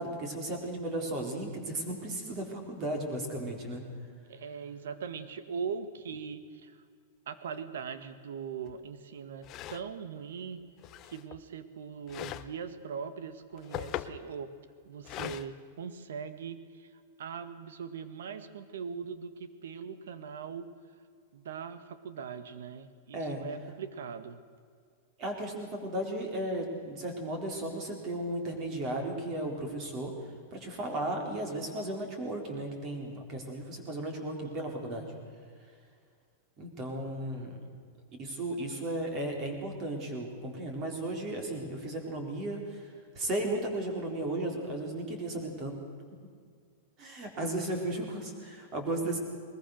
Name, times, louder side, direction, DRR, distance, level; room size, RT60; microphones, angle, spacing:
voice 1, 0.0-3.8 23.1-23.4 25.2-30.1 30.5-35.1 36.6-37.6 38.2-42.9 43.2-45.7 47.0-49.2, right 1 dB, 25° right, 2 dB, 3.9 m, -35 dB
voice 2, 4.3-6.8 7.2-10.6 11.0-14.5 14.8-20.7 21.3-24.4 37.3-37.6, right 6 dB, 85° right, 11 dB, 1.7 m, -41 dB
sound 1, 8.7-8.8 9.4-9.9 10.8-11.5 12.1-12.5 13.4-14.2 15.0-15.5, left 12 dB, 25° left, 0.7 m, -40 dB
21.5 x 20.5 x 6.5 m, 2.1 s
supercardioid pair, 175°, 0 cm